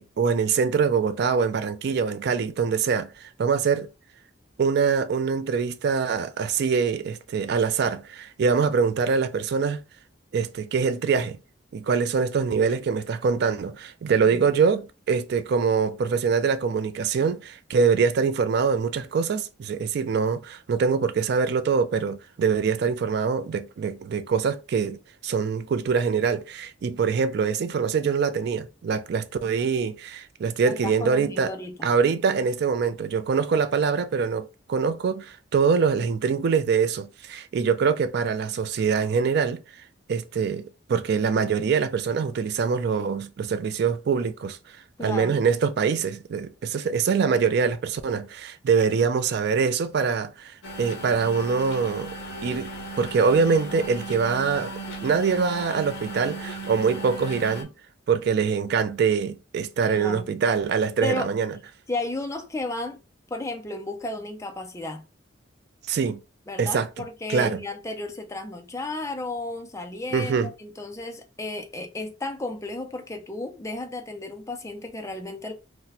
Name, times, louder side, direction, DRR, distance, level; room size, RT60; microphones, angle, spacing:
voice 1, 0.0-3.9 4.6-9.8 10.3-11.4 11.7-31.5 31.8-39.6 40.1-44.6 45.0-52.1 52.4-52.7 53.0-54.7 55.0-57.7 58.1-61.5 65.9-66.2 66.6-66.9 67.3-67.6 70.1-70.5, right 5 dB, 55° right, 0.3 m, -24 dB
voice 2, 30.6-31.9 45.0-45.3 59.9-60.3 61.0-61.3 61.9-63.0 63.3-65.0 66.5-75.5, left 2 dB, 15° left, 0.5 m, -33 dB
sound 1, 50.6-57.6, right 2 dB, 75° left, 0.8 m, -36 dB
2.7 x 2.1 x 4.0 m
head